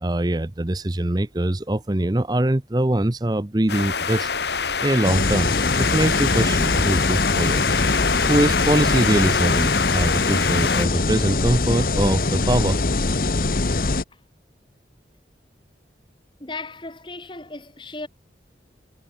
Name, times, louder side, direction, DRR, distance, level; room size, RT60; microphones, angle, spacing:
voice 1, 0.0-4.3 4.8-5.5 5.8-7.6 8.3-12.8, right 1 dB, 20° right, 0.7 m, -23 dB
sound 1, 3.7-10.9, left 5 dB, 65° left, 1.8 m, -24 dB
sound 2, 5.0-14.0, left 3 dB, 50° left, 1.1 m, -23 dB
voice 2, 16.4-18.1, left 3 dB, 25° left, 2.1 m, -35 dB
head